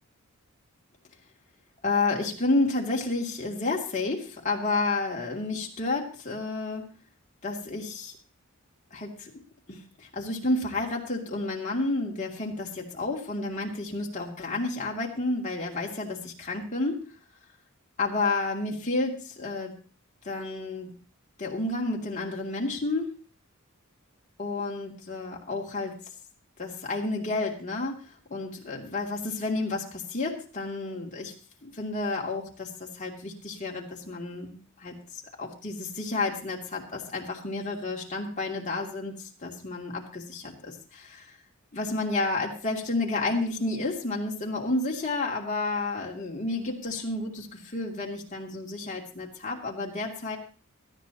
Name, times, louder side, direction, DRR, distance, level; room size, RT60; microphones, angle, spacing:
voice 1, 1.8-6.8 7.4-8.1 8.9-9.3 9.7-17.0 18.0-19.7 20.2-20.9 21.4-23.2 24.4-26.0 26.6-31.3 31.6-41.4 41.7-50.4, left 2 dB, 35° left, -2 dB, 2.7 m, -31 dB
18.5 x 13.0 x 3.0 m, 0.37 s
head